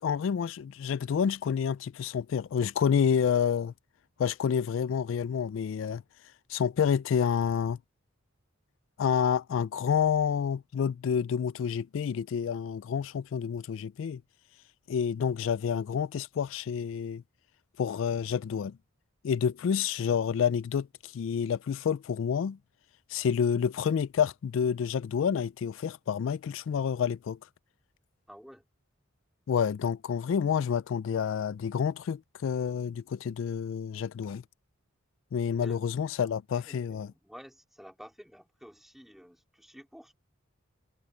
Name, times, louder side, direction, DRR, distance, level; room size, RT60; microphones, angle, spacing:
voice 1, 0.0-3.7 4.2-6.0 6.5-7.8 9.0-14.2 14.9-17.2 17.8-18.8 19.2-22.6 23.1-27.4 29.5-34.4 35.3-37.1, left 7 dB, 70° left, 0.3 m, -29 dB
voice 2, 28.3-28.7 35.5-35.9 36.5-40.2, equal, ahead, 2.8 m, -51 dB
head